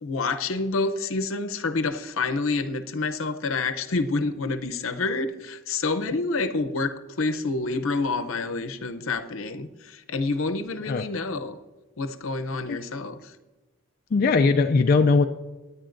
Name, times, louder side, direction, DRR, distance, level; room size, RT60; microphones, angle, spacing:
voice 1, 0.0-11.6 12.0-13.3, left 3 dB, 80° left, 9 dB, 0.7 m, -28 dB
voice 2, 14.1-15.2, left 4 dB, 45° left, 5 dB, 0.3 m, -19 dB
18.0 x 9.9 x 2.6 m, 1.2 s
head